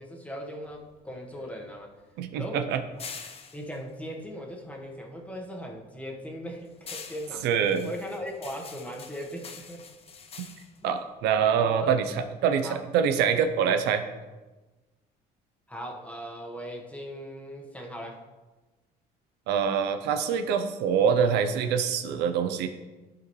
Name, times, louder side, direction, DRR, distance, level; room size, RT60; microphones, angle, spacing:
voice 1, 0.0-1.9 2.3-2.6 3.5-7.5 7.8-9.8 10.8-10.9 11.6-12.0 12.6-12.8 15.7-18.2, equal, 10° left, 0 dB, 1.3 m, -38 dB
sound 1, 0.6-5.1 5.5-11.9, left 5 dB, 35° left, 0.7 m, -46 dB
voice 2, 2.2-2.8 7.4-7.9 10.8-14.0 19.5-22.7, right 7 dB, 85° right, 8 dB, 0.7 m, -25 dB
12.0 x 4.9 x 3.2 m, 1.2 s
cardioid pair, 110°, 17 cm